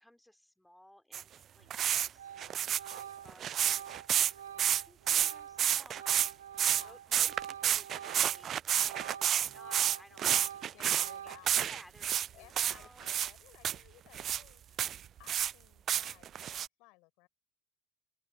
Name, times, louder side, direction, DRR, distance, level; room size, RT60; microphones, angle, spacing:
voice 1, 0.0-13.1, left 1 dB, 5° left, 3.4 m, -59 dB
sound 1, 1.1-1.2 1.7-2.1 2.4-4.3 4.6-5.3 5.6-6.3 6.6-6.8 7.1-12.3 12.6-13.3 13.6-13.8 14.1-14.4 14.8-15.5 15.9-16.7, right 10 dB, 45° right, 0.4 m, -30 dB
Organ, 1.6-1.8 2.2-8.5 8.8-11.7, right 9 dB, 80° right, 1.5 m, -46 dB
voice 2, 10.6-11.7 12.3-14.9 15.2-17.3, left 26 dB, 65° left, 5.5 m, -59 dB
open air
figure-of-eight pair, 60°, 0 cm